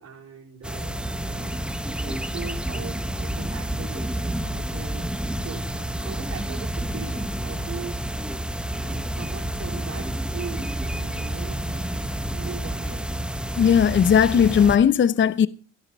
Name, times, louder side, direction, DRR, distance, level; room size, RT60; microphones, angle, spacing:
voice 1, 0.0-1.6 1.8-8.0 8.7-13.0, right 6 dB, 55° right, 4.8 m, -40 dB
sound 1, 0.6-14.8, right 1 dB, 5° right, 1.1 m, -29 dB
voice 2, 13.6-15.5, left 8 dB, 40° left, 0.6 m, -17 dB
15.5 x 11.0 x 5.4 m
cardioid pair, 90°, 30 cm